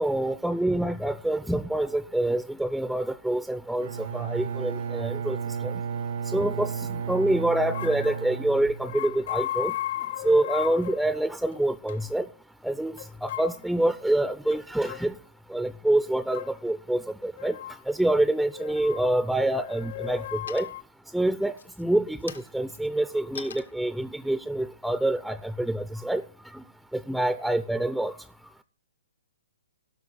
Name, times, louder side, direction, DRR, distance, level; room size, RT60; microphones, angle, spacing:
voice 1, 0.0-3.9 4.1-5.4 5.6-5.7 6.3-6.7 7.1-9.7 10.2-12.2 12.6-12.9 13.2-15.1 15.5-17.5 17.9-20.7 21.1-21.5 21.8-26.2 27.1-28.2, right 1 dB, ahead, 0.4 m, -26 dB
Bowed string instrument, 3.8-9.3, right 6 dB, 60° right, 0.5 m, -33 dB
sound 1, 7.6-8.3 8.8-11.0 11.5-11.6 11.9-12.0 13.0-13.5 14.5-15.0 16.3-16.5 17.4-17.8 18.5-19.1 19.5-20.8, left 14 dB, 60° left, 0.8 m, -35 dB
sound 2, 20.5-21.0 21.5-25.9, left 5 dB, 85° left, 1.1 m, -46 dB
17.0 x 5.8 x 3.9 m
hypercardioid pair, 140°, 0 cm